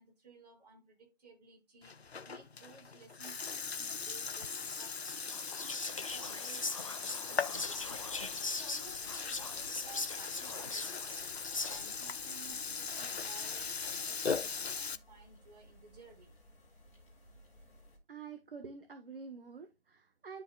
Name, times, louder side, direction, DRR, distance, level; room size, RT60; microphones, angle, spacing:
voice 1, 0.0-5.0 6.0-11.3 11.6-16.3, right 4 dB, 35° right, 5.3 m, -57 dB
Burping eructation, 1.8-15.0, left 5 dB, 65° left, 0.9 m, -39 dB
Whispering, 4.5-12.1, left 3 dB, 30° left, 0.6 m, -41 dB
sound 1, 7.5-18.0, equal, 5° left, 2.0 m, -60 dB
voice 2, 18.1-20.4, right 5 dB, 55° right, 1.4 m, -47 dB
13.0 x 5.0 x 2.3 m
figure-of-eight pair, 165°, 34 cm